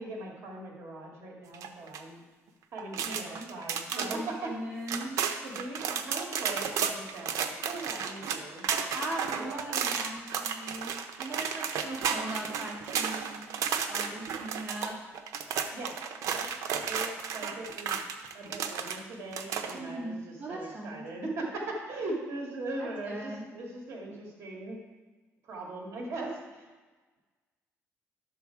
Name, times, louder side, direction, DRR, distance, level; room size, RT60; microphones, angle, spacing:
voice 1, 0.0-2.2 2.7-4.5 5.4-8.7 9.3-9.4 15.7-15.9 16.3-16.5 16.9-18.0 18.3-24.8 25.5-26.7, right 2 dB, 50° right, -1 dB, 2.2 m, -39 dB
sound 1, 1.5-2.0 2.8-4.2 4.6-4.7 4.9-19.0 19.3-19.8, right 7 dB, 75° right, 0.8 m, -33 dB
voice 2, 3.0-3.5 3.9-5.2 8.9-13.6 13.9-15.0 19.7-21.0 22.8-23.5, right 1 dB, 30° right, -5 dB, 2.3 m, -39 dB
11.5 x 6.9 x 4.7 m, 1.3 s
cardioid pair, 150°, 6 cm